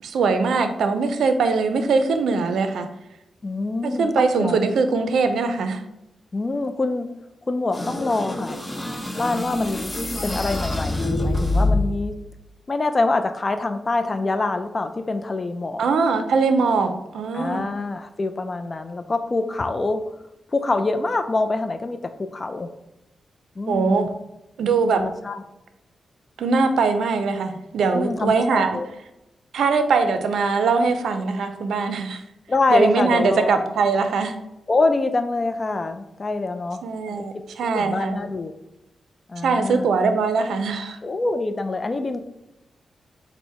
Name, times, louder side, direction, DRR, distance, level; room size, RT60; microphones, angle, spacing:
voice 1, 0.0-2.9 3.8-5.8 15.8-17.7 23.7-24.1 24.6-25.0 26.4-28.8 29.5-32.2 32.7-34.4 36.8-38.2 39.4-41.0, right 4 dB, 85° right, 8 dB, 0.4 m, -21 dB
voice 2, 3.4-4.6 6.3-7.1 7.5-8.6 9.2-9.9 10.2-12.1 12.7-15.8 17.3-20.0 20.5-22.7 23.6-24.1 24.9-25.4 27.9-28.9 32.5-33.5 34.7-36.8 37.1-37.4 37.7-38.5 39.3-39.9 41.0-42.2, left 3 dB, 40° left, 8 dB, 0.4 m, -25 dB
sound 1, 7.7-12.1, left 2 dB, 15° left, 0.7 m, -25 dB
4.4 x 2.1 x 4.3 m, 0.91 s
cardioid pair, 70°, 0 cm